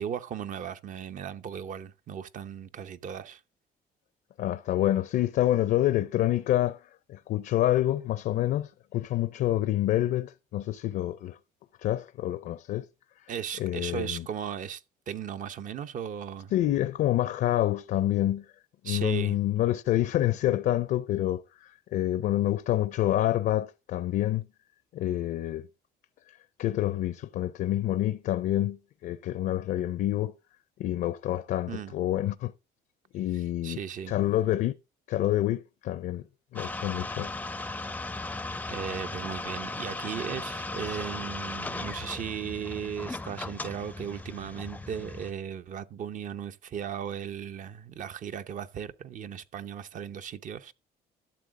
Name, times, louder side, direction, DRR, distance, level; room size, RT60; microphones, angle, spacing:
voice 1, 0.0-3.4 13.3-16.5 18.8-19.4 31.7-31.9 33.3-34.1 38.7-50.7, right 8 dB, 50° right, 0.8 m, -36 dB
voice 2, 4.4-6.8 7.1-11.4 11.8-12.9 13.6-14.3 16.5-18.4 18.8-24.5 24.9-25.7 26.6-30.3 30.8-32.5 33.1-33.8 34.1-34.7 35.1-36.2 36.5-37.3, left 13 dB, 65° left, 0.6 m, -27 dB
sound 1, 36.6-45.3, left 2 dB, 10° left, 0.5 m, -37 dB
12.0 x 7.1 x 3.7 m
cardioid pair, 110°, 17 cm